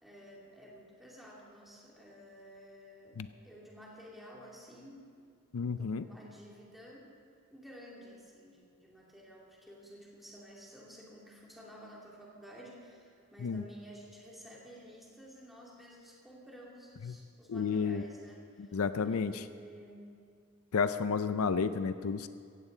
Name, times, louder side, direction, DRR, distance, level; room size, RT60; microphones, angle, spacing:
voice 1, 0.0-5.1 5.6-7.1 7.5-20.1, equal, ahead, -5 dB, 2.5 m, -52 dB
voice 2, 5.5-6.1 13.4-13.6 17.0-17.1 17.5-18.0 18.6-19.4 20.7-22.3, left 5 dB, 80° left, 12 dB, 0.5 m, -31 dB
16.5 x 15.5 x 3.9 m, 2.3 s
head